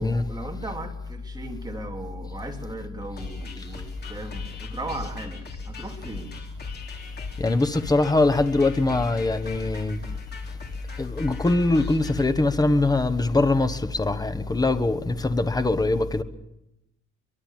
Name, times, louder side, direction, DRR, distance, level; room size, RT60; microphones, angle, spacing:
voice 1, 0.0-6.3, right 2 dB, 10° right, 3.0 m, -37 dB
sound 1, 3.2-12.3, left 4 dB, 30° left, 3.1 m, -40 dB
voice 2, 7.4-10.0 11.0-16.2, left 2 dB, 10° left, 1.1 m, -22 dB
24.0 x 22.5 x 7.4 m
cardioid pair, 160°, 32 cm